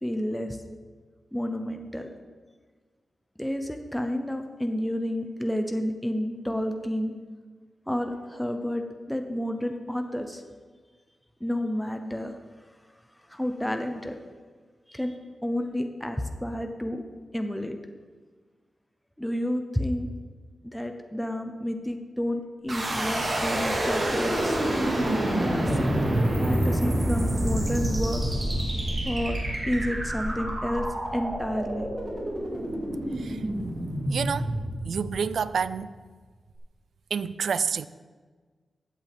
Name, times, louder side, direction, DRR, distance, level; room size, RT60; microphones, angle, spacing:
voice 1, 0.0-0.6 1.3-2.1 3.4-7.1 7.9-10.4 11.4-12.4 13.3-14.2 14.9-17.0 17.3-17.7 19.2-20.1 20.6-24.6 25.4-25.9 26.4-28.4 29.0-29.4 29.7-30.9 31.1-31.9, left 1 dB, 5° left, 0.6 m, -30 dB
sound 1, 22.7-35.6, right 1 dB, 35° right, 2.3 m, -27 dB
voice 2, 34.1-34.5 34.8-36.0 37.1-37.9, right 6 dB, 75° right, 0.3 m, -28 dB
15.0 x 8.1 x 3.5 m
wide cardioid pair, 160°, 0 cm